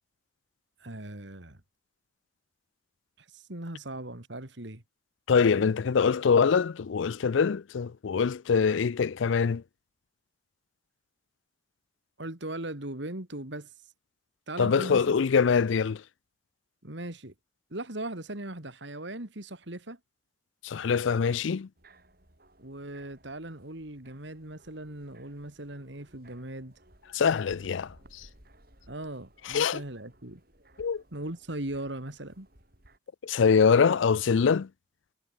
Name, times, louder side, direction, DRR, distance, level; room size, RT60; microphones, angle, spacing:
voice 1, 0.8-1.6 3.2-4.8 12.2-13.7 14.5-15.1 16.8-17.3 17.7-20.0 22.6-26.7 28.9-30.4 31.1-32.5, right 1 dB, 70° right, 2.9 m, -39 dB
voice 2, 5.3-9.6 14.6-16.0 20.6-21.7 27.1-28.3 29.5-29.8 30.8-31.0 33.2-34.7, left 6 dB, 75° left, 0.4 m, -24 dB
sound 1, 21.8-33.0, right 1 dB, 50° right, 7.8 m, -59 dB
head